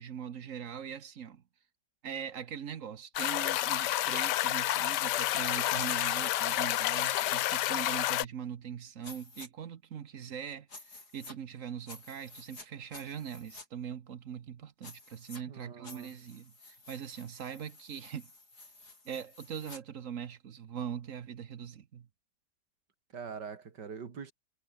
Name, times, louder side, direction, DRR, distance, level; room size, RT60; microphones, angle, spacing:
voice 1, 0.0-1.4 2.0-18.3 19.0-22.1, right 8 dB, 55° right, 1.3 m, -41 dB
sound 1, 3.2-8.3, left 14 dB, 80° left, 1.3 m, -30 dB
sound 2, 5.0-5.4 5.6-6.0 7.0-7.3 9.0-9.5 10.7-11.4 11.9-12.7 12.9-13.7 14.8-15.4 15.8-19.8, left 2 dB, 65° left, 6.4 m, -51 dB
voice 2, 15.5-16.1 23.1-24.3, right 6 dB, 80° right, 2.8 m, -43 dB
omnidirectional pair, 1.8 m